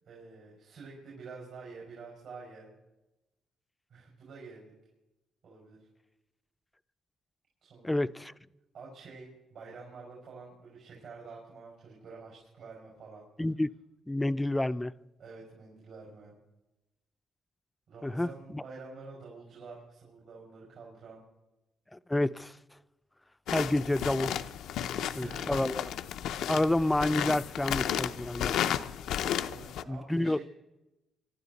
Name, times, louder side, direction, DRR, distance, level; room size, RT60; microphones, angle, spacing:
voice 1, 0.1-2.7 3.9-4.7 5.4-5.8 7.6-7.9 8.7-13.3 15.2-16.4 17.9-21.2 24.9-25.7 29.4-30.4, right 4 dB, 70° right, 5.7 m, -48 dB
voice 2, 7.8-8.3 13.4-13.7 14.1-14.9 18.0-18.6 21.9-22.6 23.5-24.4 25.2-25.9 26.5-28.7 29.9-30.4, left 1 dB, 10° left, 0.5 m, -29 dB
sound 1, 23.5-29.8, left 10 dB, 85° left, 0.6 m, -33 dB
24.5 x 12.0 x 4.1 m
cardioid pair, 90°, 0 cm